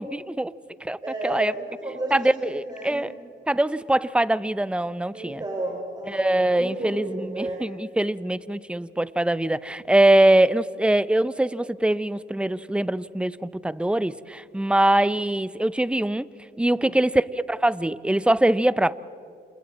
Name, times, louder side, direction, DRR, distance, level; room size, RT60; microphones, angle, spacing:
voice 1, 0.0-1.0 1.2-1.5 2.1-3.1 3.5-5.4 6.1-16.3 16.6-18.9, right 1 dB, 5° right, 0.6 m, -23 dB
voice 2, 1.0-2.2 2.5-3.0 5.1-7.6 16.7-17.0, right 2 dB, 20° right, 5.1 m, -33 dB
29.5 x 27.5 x 4.2 m
cardioid pair, 90°, 20 cm